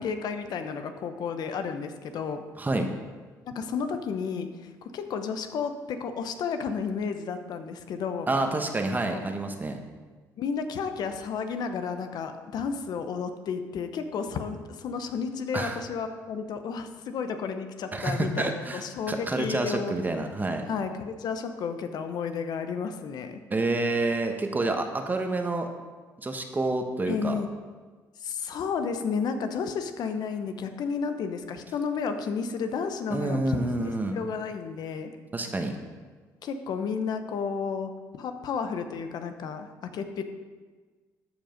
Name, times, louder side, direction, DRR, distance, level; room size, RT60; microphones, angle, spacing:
voice 1, 0.0-2.4 3.5-8.3 9.1-9.3 10.4-20.0 20.7-23.4 27.1-27.5 28.2-35.1 36.4-37.9 38.2-40.2, left 6 dB, 65° left, 8 dB, 0.9 m, -32 dB
voice 2, 2.6-2.9 8.3-9.8 15.5-15.8 17.9-20.6 23.5-25.7 26.2-27.4 33.1-34.2 35.3-35.8, right 2 dB, 25° right, 5 dB, 1.1 m, -28 dB
13.5 x 5.1 x 5.2 m, 1.4 s
supercardioid pair, 75°, 7 cm